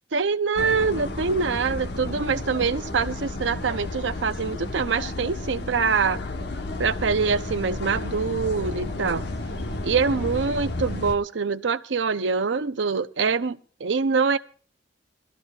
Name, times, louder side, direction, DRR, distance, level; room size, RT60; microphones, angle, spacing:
voice 1, 0.1-6.2 6.8-9.2 9.8-14.4, right 5 dB, 90° right, 0.7 m, -24 dB
sound 1, 0.6-11.2, left 2 dB, 65° left, 1.2 m, -32 dB
23.0 x 13.5 x 2.4 m
head